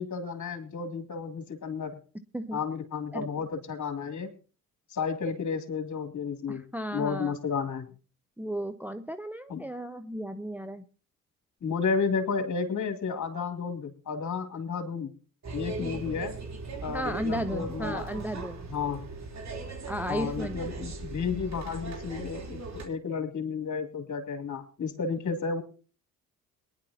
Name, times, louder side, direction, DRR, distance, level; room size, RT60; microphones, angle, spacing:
voice 1, 0.0-2.0 2.5-4.3 4.9-6.6 6.9-7.9 9.5-9.6 11.6-15.1 15.5-16.4 16.8-18.2 18.7-19.1 20.1-25.6, left 5 dB, 45° left, 5 dB, 3.0 m, -32 dB
voice 2, 6.5-7.3 8.4-10.8 15.8-16.0 16.9-18.7 19.9-20.8, equal, 5° right, 9 dB, 0.8 m, -34 dB
sound 1, 15.4-22.8, right 3 dB, 45° right, 3.6 m, -38 dB
22.5 x 10.5 x 2.9 m, 0.38 s
hypercardioid pair, 50°, 39 cm